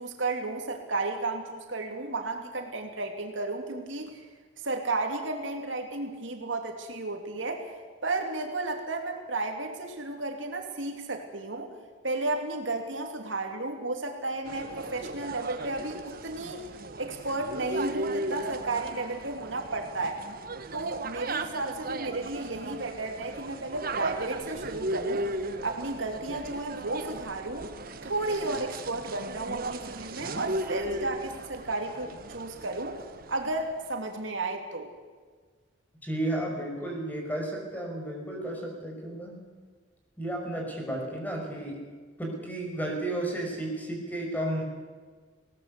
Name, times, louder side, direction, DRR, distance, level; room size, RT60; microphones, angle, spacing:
voice 1, 0.0-4.2 4.6-7.7 8.0-11.7 12.0-16.6 17.0-20.2 20.7-25.3 25.6-27.7 28.0-33.0 33.3-34.9, right 2 dB, 75° right, 3 dB, 2.8 m, -33 dB
sound 1, 14.4-33.7, right 2 dB, 50° right, 1.2 m, -36 dB
voice 2, 36.0-39.4 40.2-41.8 42.2-44.6, right 1 dB, 10° left, 0 dB, 5.5 m, -33 dB
20.0 x 18.5 x 8.3 m, 1.5 s
head